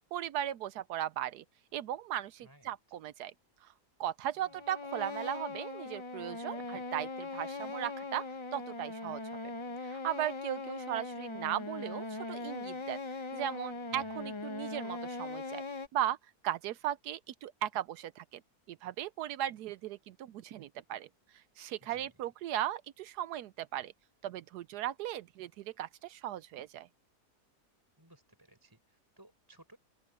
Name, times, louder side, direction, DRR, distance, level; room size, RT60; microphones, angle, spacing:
voice 1, 0.0-1.4 1.7-3.3 4.0-8.2 8.5-9.2 9.8-13.0 13.3-15.6 15.9-16.2 16.4-18.4 18.7-21.1 21.6-23.9 24.2-26.9, right 12 dB, 80° right, 1.1 m, -37 dB
sound 1, 4.4-15.9, left 3 dB, 45° left, 0.3 m, -40 dB
voice 2, 13.9-14.3 21.8-22.1 28.0-29.8, right 1 dB, 10° right, 4.5 m, -60 dB
open air
omnidirectional pair, 1.7 m